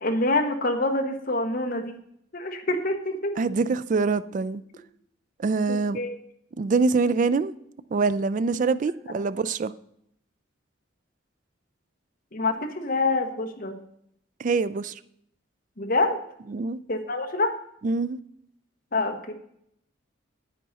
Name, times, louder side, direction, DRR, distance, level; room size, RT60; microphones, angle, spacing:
voice 1, 0.0-2.0 2.3-3.3 5.7-6.1 12.3-13.8 15.8-16.2 16.9-17.5 18.9-19.3, left 2 dB, 45° left, 1.1 m, -26 dB
voice 2, 3.4-4.6 5.4-6.0 6.6-7.5 7.9-9.7 14.4-15.0 16.5-16.8 17.8-18.2, right 4 dB, 40° right, 0.3 m, -24 dB
10.0 x 8.3 x 4.1 m
head